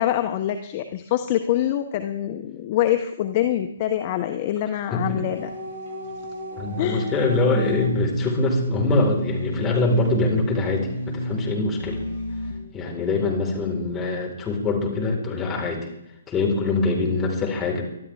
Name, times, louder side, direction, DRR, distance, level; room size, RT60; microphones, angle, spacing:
voice 1, 0.0-5.5 6.8-7.1, left 12 dB, 35° left, 8 dB, 1.0 m, -25 dB
voice 2, 4.9-5.2 6.6-12.0 12.7-15.8 16.3-17.8, left 3 dB, 15° left, -1 dB, 4.6 m, -23 dB
sound 1, 5.3-12.7, equal, 60° left, 7.1 m, -31 dB
24.5 x 12.5 x 3.6 m, 0.83 s
figure-of-eight pair, 130°, 0 cm